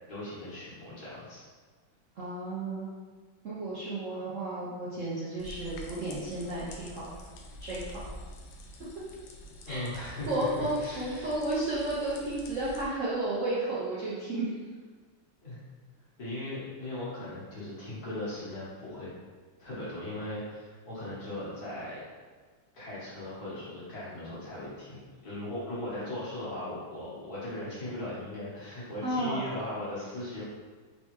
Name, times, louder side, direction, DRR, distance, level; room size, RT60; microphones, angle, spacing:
voice 1, 0.1-1.4 9.7-11.3 15.4-15.7 16.2-19.1 19.6-22.0 22.7-30.4, left 1 dB, 55° left, -9 dB, 1.8 m, -38 dB
voice 2, 2.2-2.9 3.4-7.1 7.6-8.0 9.7-9.9 10.3-14.5 29.0-29.5, right 2 dB, 55° right, -9 dB, 0.9 m, -32 dB
sound 1, 5.4-12.8, equal, 75° left, 1.0 m, -47 dB
4.2 x 3.4 x 3.0 m, 1.5 s
omnidirectional pair, 2.1 m